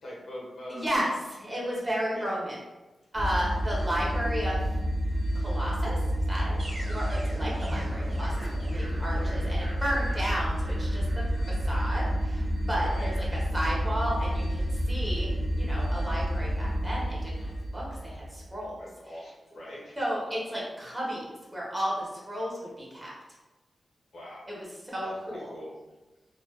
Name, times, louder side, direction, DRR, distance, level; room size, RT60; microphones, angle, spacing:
voice 1, 0.0-0.9 2.1-2.3 9.1-9.3 12.8-13.1 18.8-20.0 24.1-24.5 25.0-25.7, equal, 80° left, -5 dB, 0.8 m, -42 dB
voice 2, 0.7-2.6 3.1-4.6 5.3-6.0 6.3-6.6 6.9-8.3 8.7-18.8 20.0-23.1 24.5-24.6 24.9-25.5, equal, 25° right, -5 dB, 0.9 m, -33 dB
sound 1, 3.1-18.5, equal, 50° right, 0.6 m, -29 dB
2.4 x 2.2 x 2.3 m, 1.1 s
cardioid pair, 70°, 0 cm